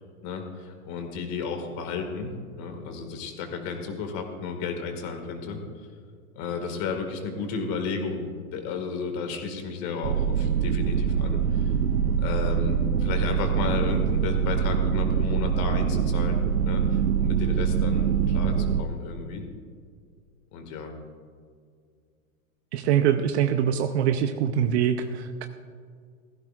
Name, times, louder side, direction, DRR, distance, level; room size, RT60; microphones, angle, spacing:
voice 1, 0.2-5.6 6.4-8.3 8.5-11.7 12.2-19.5 20.5-20.9, left 5 dB, 35° left, 5 dB, 2.0 m, -33 dB
sound 1, 10.0-18.8, right 7 dB, 85° right, 0.9 m, -24 dB
voice 2, 22.7-25.5, right 9 dB, 50° right, 8 dB, 0.7 m, -24 dB
16.5 x 15.0 x 2.5 m, 2.1 s
hypercardioid pair, 140°, 43 cm